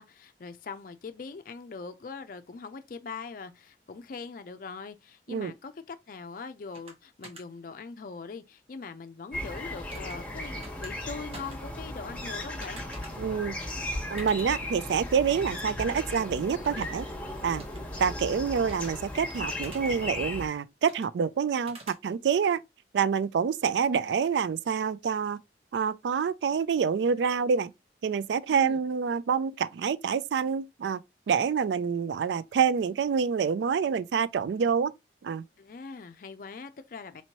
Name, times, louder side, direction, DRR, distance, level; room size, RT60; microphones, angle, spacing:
voice 1, 0.0-12.8 28.5-28.8 35.6-37.2, left 4 dB, 50° left, 0.4 m, -42 dB
sound 1, 6.7-6.9 7.2-7.4 9.9-10.2 10.6-10.9 11.3-11.6 12.6-13.1 14.2-14.6 15.9-16.2 16.6-16.9 17.6-17.8 18.7-18.9 19.5-19.9 20.9-21.1 21.7-22.0, right 3 dB, 35° right, 0.9 m, -47 dB
sound 2, 9.3-20.5, left 1 dB, 10° left, 1.1 m, -36 dB
voice 2, 13.2-13.6 14.1-17.1 17.4-17.7 18.0-22.6 22.9-25.4 25.7-27.7 28.0-31.0 31.3-34.9 35.2-35.4, right 6 dB, 80° right, 0.3 m, -27 dB
4.3 x 3.0 x 2.8 m
head